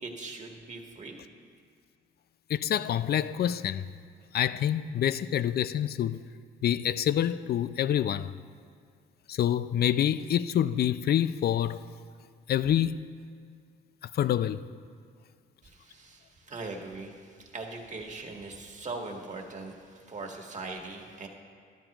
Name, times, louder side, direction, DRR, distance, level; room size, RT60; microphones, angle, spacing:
voice 1, 0.0-1.2 15.6-21.3, right 3 dB, 35° right, 1.6 m, -41 dB
voice 2, 2.5-3.9 4.3-6.2 6.6-8.3 9.3-11.8 12.5-13.0 14.1-14.6, left 10 dB, 55° left, 0.4 m, -27 dB
13.0 x 12.5 x 3.0 m
cardioid pair, 90°, 20 cm